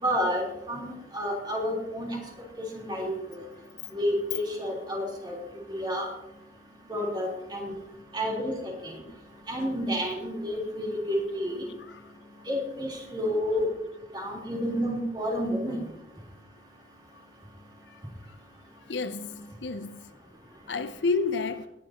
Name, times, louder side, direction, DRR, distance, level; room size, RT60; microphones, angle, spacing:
voice 1, 0.0-2.2 2.6-3.4 3.9-5.3 5.7-6.1 6.9-7.8 8.1-8.9 9.5-11.6 12.5-13.7 14.1-15.8, equal, 25° right, 3.8 m, -30 dB
voice 2, 18.9-19.3 19.6-20.0 20.7-21.7, left 4 dB, 85° left, 0.7 m, -30 dB
20.0 x 11.0 x 3.0 m
head